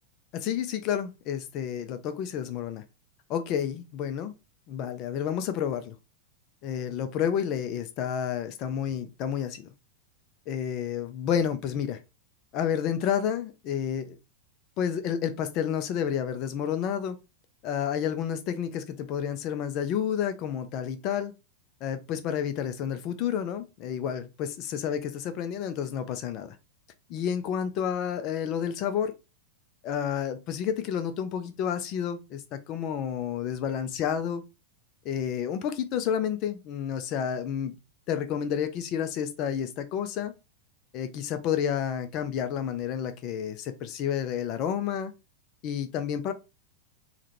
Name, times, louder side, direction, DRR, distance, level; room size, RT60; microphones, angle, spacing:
voice 1, 0.3-2.8 3.3-4.3 4.7-5.9 6.6-9.7 10.5-12.0 12.5-14.2 14.8-17.2 17.6-21.3 21.8-26.6 27.1-29.1 29.8-34.4 35.0-37.8 38.1-40.3 40.9-45.1 45.6-46.3, left 8 dB, 40° left, 0.3 m, -30 dB
3.5 x 2.1 x 2.8 m
figure-of-eight pair, 90°, 0 cm